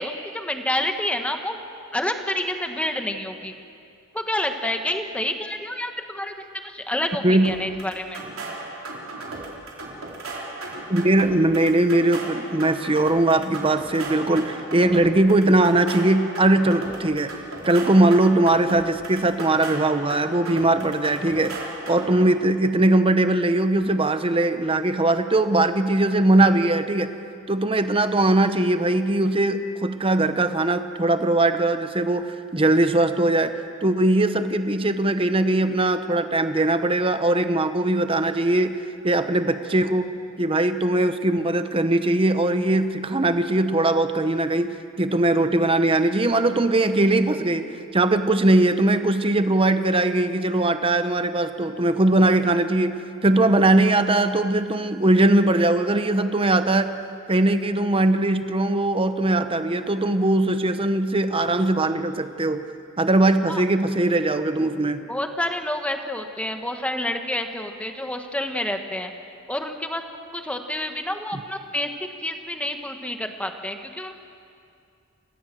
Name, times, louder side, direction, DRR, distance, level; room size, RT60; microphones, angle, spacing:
voice 1, 0.0-1.6 1.9-3.5 4.1-6.3 6.6-8.2 63.5-63.6 65.1-69.1 69.5-70.0 70.3-71.9 72.2-74.1, left 1 dB, 5° left, 5 dB, 1.4 m, -28 dB
sound 1, 7.4-22.3, right 2 dB, 75° right, 4.1 m, -36 dB
voice 2, 10.9-17.3 17.6-27.1 27.5-33.5 33.8-38.8 39.0-40.1 40.4-56.9 57.3-62.6 63.0-65.0 71.3-71.4, right 2 dB, 25° right, 10 dB, 1.0 m, -20 dB
28.5 x 15.5 x 7.6 m, 2.5 s
head